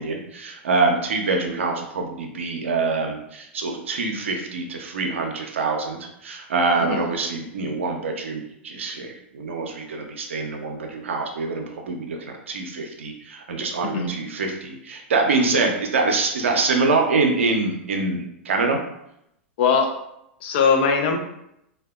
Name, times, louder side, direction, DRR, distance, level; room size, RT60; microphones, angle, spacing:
voice 1, 0.0-18.8, right 3 dB, 85° right, 2 dB, 0.5 m, -25 dB
voice 2, 6.8-7.1 13.9-14.1 15.5-15.7 19.6-20.0 20.4-21.2, left 5 dB, 60° left, 4 dB, 0.4 m, -21 dB
2.6 x 2.2 x 2.2 m, 0.80 s
hypercardioid pair, 105°, 7 cm